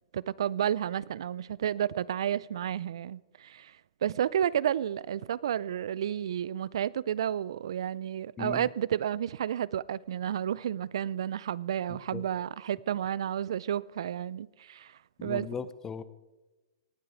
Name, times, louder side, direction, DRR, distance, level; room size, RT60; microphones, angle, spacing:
voice 1, 0.1-15.5, right 10 dB, 70° right, 0.4 m, -31 dB
voice 2, 8.4-8.7 12.1-12.2 15.2-16.0, left 6 dB, 15° left, 0.7 m, -37 dB
18.5 x 7.9 x 5.0 m
hypercardioid pair, 140°, 3 cm